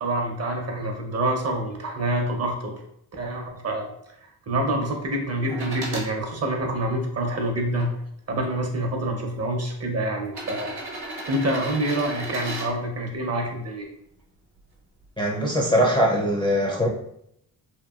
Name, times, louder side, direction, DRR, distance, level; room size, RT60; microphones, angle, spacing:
voice 1, 0.0-2.7 3.2-3.9 4.5-7.9 8.3-10.7 11.3-13.9, right 1 dB, 40° right, 2 dB, 0.6 m, -26 dB
sound 1, 5.5-6.1 6.8-7.9 8.8-8.9 10.2-12.7 14.6-14.7, right 2 dB, 70° right, 0.8 m, -35 dB
voice 2, 15.2-16.9, equal, 10° left, -2 dB, 0.4 m, -21 dB
2.9 x 2.3 x 2.3 m, 0.73 s
cardioid pair, 65°, 41 cm